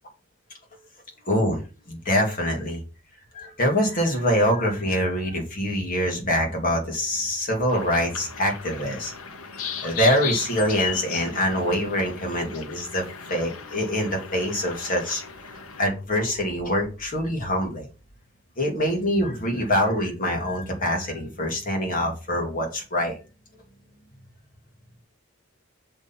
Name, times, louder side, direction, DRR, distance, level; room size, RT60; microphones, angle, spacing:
voice 1, 1.3-1.6 1.9-2.8 3.3-9.1 9.8-13.0 13.3-15.2 15.8-17.9 18.6-23.2, equal, 40° left, 1 dB, 2.4 m, -24 dB
sound 1, 7.7-15.8, left 7 dB, 80° left, 1.1 m, -36 dB
6.8 x 4.5 x 5.5 m, 0.33 s
head